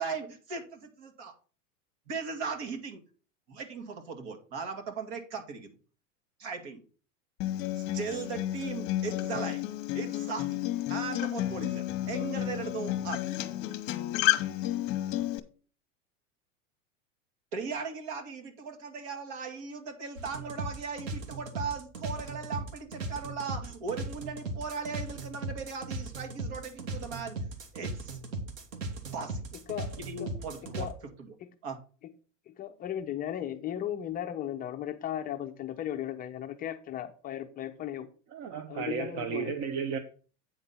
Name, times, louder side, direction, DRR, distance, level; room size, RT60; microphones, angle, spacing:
voice 1, 0.0-1.4 2.1-3.0 3.5-5.7 6.4-6.8 7.8-10.6 10.9-13.3 17.5-27.4 27.7-28.2 29.1-29.4 30.1-30.9 31.2-31.3 31.6-31.8, right 5 dB, 60° right, 2.2 m, -38 dB
Acoustic guitar, 7.4-15.4, left 15 dB, 45° left, 1.0 m, -31 dB
sound 1, 20.2-30.9, right 2 dB, 85° right, 1.8 m, -37 dB
voice 2, 29.7-30.3 30.8-30.9 31.4-31.6 32.5-38.1 38.7-39.5, left 11 dB, 25° left, 0.5 m, -36 dB
voice 3, 38.3-40.0, right 7 dB, 40° right, 0.8 m, -33 dB
8.6 x 4.4 x 5.5 m
supercardioid pair, 140°, 38 cm